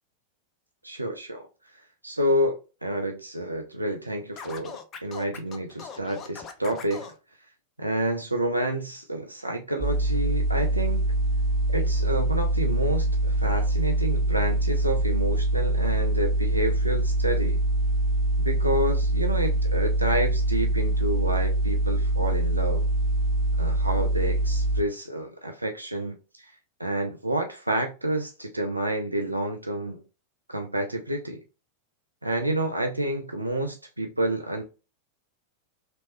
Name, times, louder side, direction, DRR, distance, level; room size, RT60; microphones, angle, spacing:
voice 1, 0.8-1.4 2.0-7.1 7.8-11.0 11.7-17.6 18.4-22.8 23.6-26.5 26.8-30.0 30.5-31.4 32.2-34.6, right 1 dB, 85° right, 0.4 m, -29 dB
Scratching (performance technique), 4.4-7.2, left 6 dB, 30° left, 0.6 m, -40 dB
sound 1, 9.8-24.8, right 1 dB, 30° right, 0.5 m, -24 dB
3.1 x 3.0 x 3.0 m
figure-of-eight pair, 90°, 0 cm